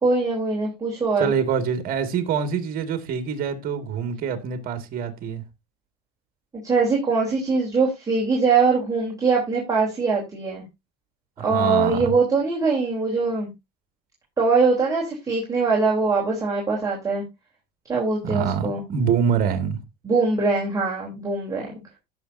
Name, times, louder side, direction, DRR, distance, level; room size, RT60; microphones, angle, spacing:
voice 1, 0.0-1.3 6.6-10.6 11.4-13.5 14.4-17.2 17.9-18.8 20.0-21.7, right 4 dB, 20° right, 3.3 m, -22 dB
voice 2, 1.2-5.4 11.4-12.2 18.2-19.8, right 7 dB, 50° right, 2.0 m, -25 dB
17.0 x 6.3 x 2.6 m
supercardioid pair, 115°, 19 cm